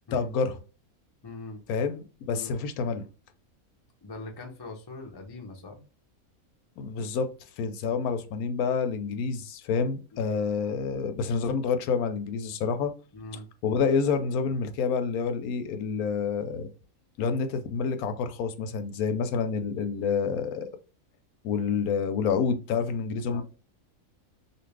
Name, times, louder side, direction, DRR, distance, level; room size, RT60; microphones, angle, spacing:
voice 1, 0.1-0.6 1.7-3.0 6.8-7.3 7.6-12.9 13.6-16.7 17.2-20.7 21.4-23.4, left 5 dB, 80° left, 9 dB, 1.0 m, -28 dB
voice 2, 1.2-1.6 2.2-2.6 4.0-5.8 10.1-10.3 13.1-13.5 23.3-23.4, left 2 dB, 40° left, 2 dB, 0.3 m, -42 dB
2.7 x 2.5 x 3.2 m, 0.34 s
omnidirectional pair, 1.5 m